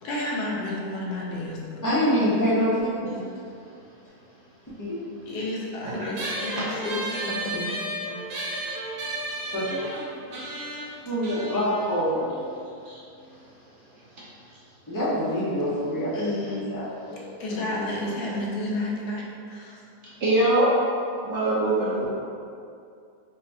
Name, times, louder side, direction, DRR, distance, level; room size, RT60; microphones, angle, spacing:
voice 1, 0.0-2.4 5.3-7.7 16.1-16.7 17.4-19.8, left 1 dB, 90° left, -3 dB, 1.2 m, -31 dB
voice 2, 1.8-3.2 4.8-5.0 7.5-7.6 8.1-8.2 9.5-9.8 11.0-12.2 14.9-17.2 18.0-18.1, equal, 25° left, -9 dB, 0.4 m, -26 dB
sound 1, 6.2-13.0, right 1 dB, 85° right, 1.3 m, -34 dB
voice 3, 20.2-20.7 21.2-22.1, right 1 dB, 60° right, -7 dB, 0.9 m, -22 dB
4.9 x 2.2 x 2.7 m, 2.4 s
omnidirectional pair, 1.7 m